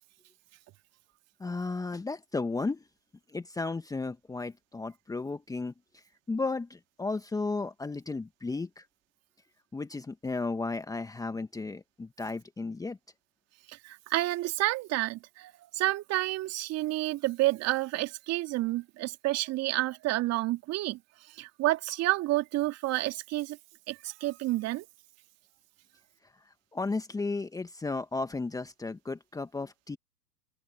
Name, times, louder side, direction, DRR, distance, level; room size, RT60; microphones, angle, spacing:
voice 1, 1.4-2.8 3.3-8.8 9.7-13.0 26.7-30.0, left 3 dB, 5° left, 1.7 m, -34 dB
voice 2, 13.7-21.0 21.3-23.6 23.9-24.9, right 17 dB, 30° right, 2.8 m, -30 dB
open air
figure-of-eight pair, 105°, 49 cm